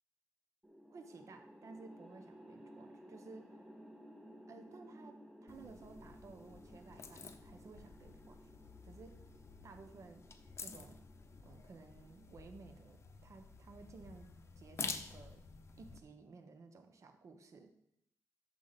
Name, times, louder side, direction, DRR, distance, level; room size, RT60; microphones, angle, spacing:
sound 1, 0.6-13.0, equal, 10° right, 2.1 m, -58 dB
voice 1, 0.9-3.6 4.5-8.4 8.8-9.2 9.6-10.2 10.6-11.0 11.4-14.3 14.6-15.4 15.8-17.7, right 4 dB, 50° right, 6 dB, 1.1 m, -55 dB
sound 2, 5.5-16.0, left 5 dB, 45° left, 0.8 m, -50 dB
12.0 x 6.9 x 4.2 m, 0.75 s
wide cardioid pair, 150°, 7 cm